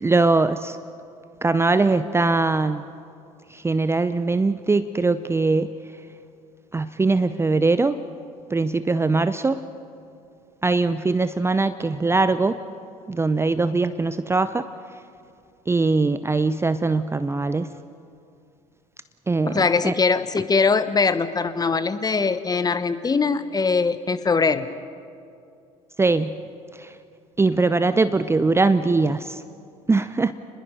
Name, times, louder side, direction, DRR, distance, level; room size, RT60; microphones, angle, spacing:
voice 1, 0.0-0.8 1.4-2.8 3.5-5.7 6.7-8.0 8.5-9.6 10.6-12.6 13.1-14.7 15.7-17.7 19.3-19.9 26.0-26.4 26.8-26.9 27.4-29.4 29.9-30.3, right 3 dB, 15° right, 13 dB, 0.7 m, -21 dB
voice 2, 19.5-24.7, left 4 dB, 20° left, 13 dB, 1.1 m, -21 dB
29.5 x 21.0 x 5.3 m, 2.5 s
figure-of-eight pair, 60°, 18 cm